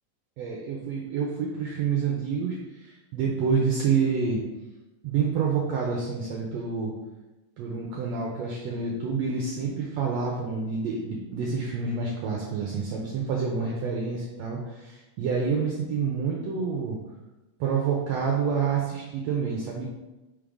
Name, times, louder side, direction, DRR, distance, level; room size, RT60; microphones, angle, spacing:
voice 1, 0.4-4.4 5.0-6.9 7.6-17.0 17.6-19.9, right 5 dB, 80° right, -2 dB, 1.6 m, -28 dB
5.3 x 3.7 x 4.9 m, 1.1 s
omnidirectional pair, 3.7 m